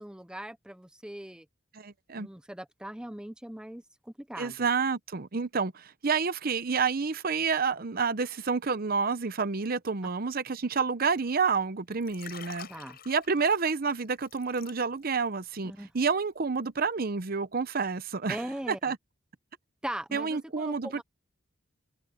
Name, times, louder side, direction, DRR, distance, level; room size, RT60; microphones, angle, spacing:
voice 1, 0.0-1.5 2.1-4.6 12.7-13.0 15.6-15.9 18.3-18.8 19.8-21.0, right 1 dB, 5° right, 0.5 m, -40 dB
voice 2, 1.7-2.3 4.4-12.7 13.1-19.0 20.1-21.0, right 5 dB, 50° right, 0.8 m, -29 dB
Liquid, 11.9-15.2 15.5-15.8, left 8 dB, 55° left, 7.0 m, -48 dB
head